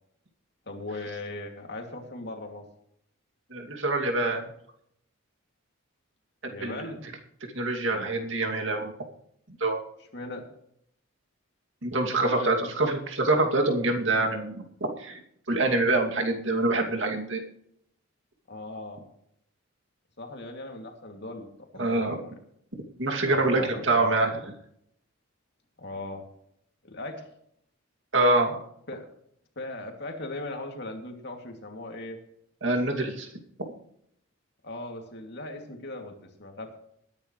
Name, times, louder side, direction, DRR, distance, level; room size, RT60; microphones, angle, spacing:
voice 1, 0.7-2.7 6.5-7.0 10.1-10.5 12.2-12.7 18.5-19.0 20.2-21.5 21.7-22.3 23.3-24.1 25.8-26.2 26.8-27.3 28.9-29.1 29.6-32.2 34.6-36.8, left 2 dB, 50° left, 3 dB, 2.6 m, -38 dB
voice 2, 3.5-4.4 6.4-6.8 7.5-8.9 9.6-9.8 11.8-15.2 15.5-17.4 21.8-22.2 23.0-24.5 28.1-28.6 32.6-33.3, right 2 dB, 60° right, 3 dB, 2.6 m, -25 dB
20.5 x 10.5 x 3.2 m, 0.71 s
head